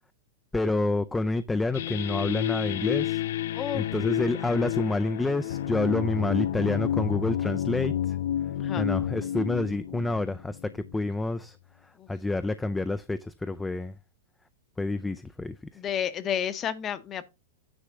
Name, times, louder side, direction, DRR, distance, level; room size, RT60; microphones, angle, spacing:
voice 1, 0.5-3.2 3.7-8.2 8.8-11.6 11.8-13.9 14.8-15.6, left 2 dB, 5° left, 0.4 m, -28 dB
sound 1, 1.7-11.1, left 11 dB, 70° left, 0.4 m, -30 dB
voice 2, 3.5-3.9 8.6-8.9 12.0-12.1 15.7-17.3, left 9 dB, 25° left, 0.8 m, -31 dB
9.8 x 3.3 x 6.0 m
supercardioid pair, 145°, 0 cm